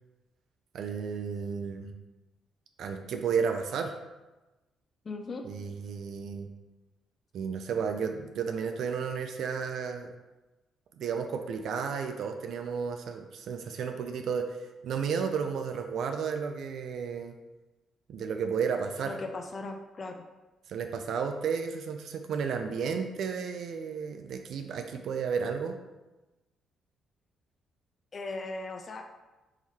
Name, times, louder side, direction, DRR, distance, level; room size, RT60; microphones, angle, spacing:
voice 1, 0.7-1.9 2.8-4.0 5.4-6.5 7.3-10.1 11.0-17.4 18.1-19.1 20.7-25.7, right 6 dB, 70° right, 6 dB, 0.4 m, -32 dB
voice 2, 5.1-5.4 19.1-20.2 28.1-29.0, left 3 dB, 40° left, 4 dB, 0.4 m, -38 dB
3.9 x 3.0 x 4.1 m, 1.1 s
cardioid pair, 90°, 0 cm